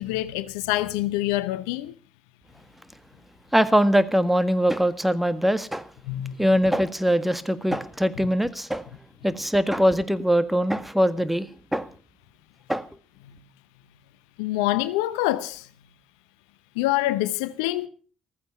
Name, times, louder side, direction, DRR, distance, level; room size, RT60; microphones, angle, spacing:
voice 1, 0.0-1.9 6.1-6.5 13.2-13.4 14.4-15.7 16.7-17.9, left 16 dB, 75° left, 0.7 m, -26 dB
voice 2, 3.5-5.9 6.4-8.9 9.2-11.9 12.7-12.9, equal, 5° right, 1.6 m, -22 dB
15.5 x 14.5 x 5.8 m
hypercardioid pair, 45°, 3 cm